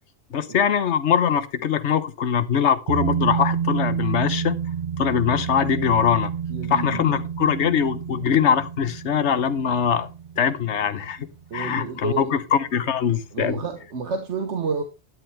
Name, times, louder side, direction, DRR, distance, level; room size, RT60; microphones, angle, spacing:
voice 1, 0.3-4.6 5.0-6.3 6.7-10.1 10.4-11.3 11.5-13.6, left 8 dB, 80° left, 1.2 m, -22 dB
sound 1, 2.9-12.0 12.3-12.4, right 7 dB, 45° right, 0.8 m, -29 dB
voice 2, 6.5-7.0 11.5-12.3 13.3-14.8, right 5 dB, 80° right, 1.6 m, -29 dB
12.5 x 10.5 x 3.4 m
omnidirectional pair, 1.2 m